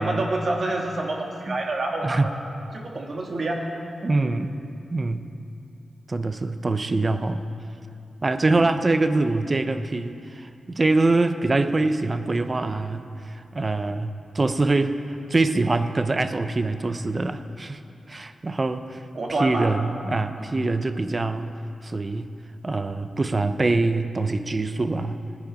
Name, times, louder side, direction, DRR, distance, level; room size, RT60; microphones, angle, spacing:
voice 1, 0.0-2.2 2.7-3.6 4.1-4.2 8.5-8.6 19.1-19.7 20.3-20.5, right 2 dB, 50° right, 0 dB, 1.8 m, -27 dB
voice 2, 4.0-4.5 4.9-5.3 6.1-7.4 8.2-15.0 15.3-17.8 18.1-19.0 19.4-21.5 21.8-22.3 22.6-25.2, right 2 dB, 35° right, 10 dB, 0.6 m, -24 dB
16.5 x 10.0 x 5.2 m, 2.7 s
cardioid pair, 85°, 0 cm